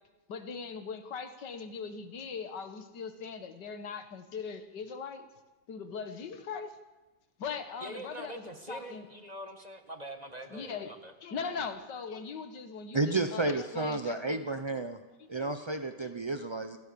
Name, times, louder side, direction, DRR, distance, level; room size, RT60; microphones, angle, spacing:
voice 1, 0.3-5.3 5.7-6.7 7.4-9.1 10.5-10.9 11.2-14.4 15.3-15.5 16.0-16.1, left 5 dB, 80° left, 9 dB, 2.1 m, -40 dB
voice 2, 7.8-11.1, right 1 dB, 25° right, 5 dB, 1.6 m, -44 dB
voice 3, 12.9-15.0 15.3-16.8, right 2 dB, 40° right, 8 dB, 0.4 m, -31 dB
28.5 x 14.5 x 7.0 m, 1.1 s
omnidirectional pair, 1.8 m